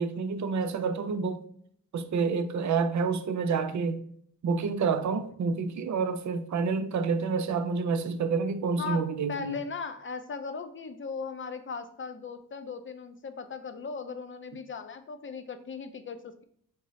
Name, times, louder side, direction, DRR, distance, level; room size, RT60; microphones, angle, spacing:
voice 1, 0.0-1.4 1.9-4.1 4.4-9.6, right 5 dB, 50° right, 0.5 m, -28 dB
voice 2, 8.8-16.4, left 5 dB, 35° left, 0.5 m, -38 dB
3.7 x 2.0 x 3.9 m
cardioid pair, 50°, 38 cm